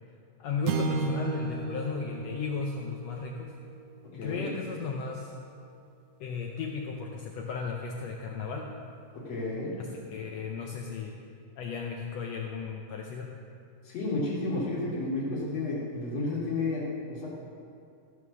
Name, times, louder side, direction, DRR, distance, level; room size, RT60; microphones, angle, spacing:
voice 1, 0.4-3.5 4.1-5.4 6.2-8.7 9.8-11.2 11.6-13.3, left 5 dB, 75° left, 1 dB, 1.5 m, -35 dB
sound 1, 0.6-5.1, right 5 dB, 75° right, 1.9 m, -35 dB
voice 2, 4.1-4.5 9.3-9.7 13.8-17.3, left 2 dB, 55° left, -5 dB, 3.0 m, -31 dB
14.5 x 6.5 x 6.2 m, 2.4 s
omnidirectional pair, 3.7 m